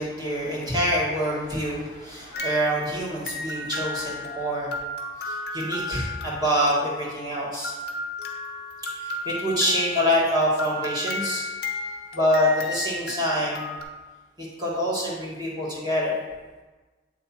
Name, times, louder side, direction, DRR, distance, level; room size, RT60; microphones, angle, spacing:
voice 1, 0.0-4.7 5.2-7.7 9.0-11.4 12.1-13.7 14.4-16.2, equal, 20° right, -5 dB, 1.6 m, -26 dB
sound 1, 2.3-13.8, left 1 dB, 50° left, 0.9 m, -34 dB
8.2 x 3.4 x 4.2 m, 1.3 s
head